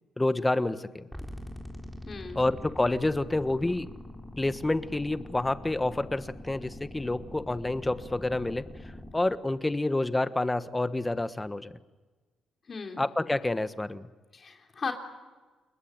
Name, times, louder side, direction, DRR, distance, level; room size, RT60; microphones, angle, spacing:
voice 1, 0.2-1.1 2.3-3.9 4.4-8.6 9.1-11.7 13.0-14.1, left 2 dB, 15° left, 11 dB, 1.3 m, -28 dB
sound 1, 1.1-9.1, left 1 dB, ahead, 4.3 m, -44 dB
voice 2, 2.0-2.4 12.7-13.0 14.3-14.9, left 5 dB, 40° left, 3 dB, 3.4 m, -36 dB
29.5 x 21.0 x 8.9 m, 1.3 s
cardioid pair, 90°, 0 cm